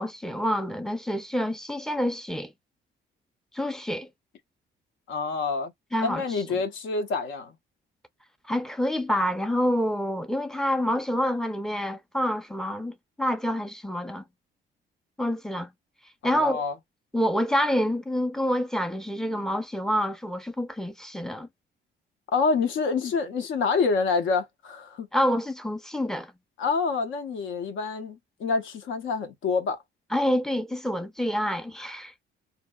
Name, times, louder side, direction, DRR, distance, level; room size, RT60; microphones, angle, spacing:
voice 1, 0.0-2.5 3.5-4.1 5.9-6.2 8.5-14.2 15.2-15.7 16.2-16.6 17.1-21.5 25.1-26.3 30.1-32.2, equal, ahead, 0.5 m, -27 dB
voice 2, 5.1-5.7 6.0-7.6 16.2-16.7 22.3-25.1 26.6-29.8, left 4 dB, 75° left, 0.7 m, -27 dB
2.7 x 2.1 x 2.2 m
cardioid pair, 90°, 20 cm